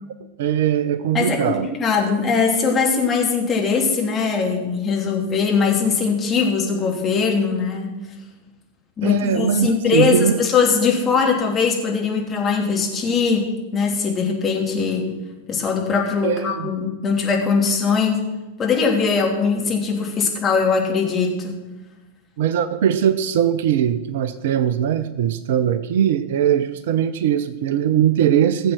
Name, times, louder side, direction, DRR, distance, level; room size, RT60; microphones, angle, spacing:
voice 1, 0.4-1.7 9.0-10.4 16.2-16.7 17.9-18.0 22.4-28.7, right 9 dB, 55° right, 13 dB, 0.7 m, -20 dB
voice 2, 1.1-7.9 9.0-15.0 15.5-18.2 18.6-21.6, left 5 dB, 25° left, -1 dB, 3.3 m, -21 dB
16.5 x 7.5 x 6.3 m, 1.1 s
figure-of-eight pair, 90°, 0 cm